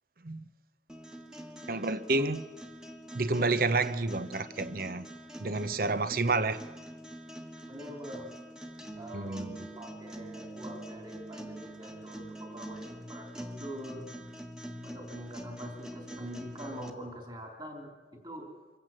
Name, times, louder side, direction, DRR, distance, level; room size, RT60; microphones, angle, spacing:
sound 1, 0.9-16.9, right 1 dB, 5° right, 1.3 m, -45 dB
voice 1, 1.7-2.4 3.1-5.1 5.4-6.6 9.1-9.7, right 3 dB, 50° right, 0.8 m, -29 dB
voice 2, 7.7-8.3 8.9-14.1 14.8-18.5, equal, 25° right, 3.8 m, -44 dB
25.0 x 15.5 x 7.6 m
head